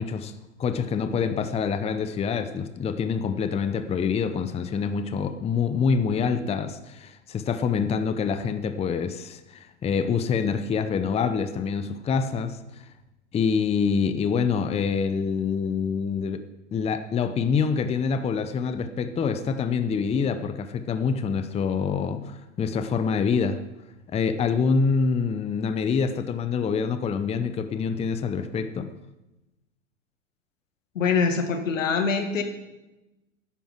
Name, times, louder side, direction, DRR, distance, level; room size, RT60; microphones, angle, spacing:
voice 1, 0.0-12.8 13.3-16.4 16.7-23.6 24.1-28.9, left 5 dB, 15° left, 0.7 m, -26 dB
voice 2, 31.0-32.4, left 5 dB, 80° left, 2.1 m, -24 dB
10.5 x 9.2 x 7.4 m
hypercardioid pair, 110°, 38 cm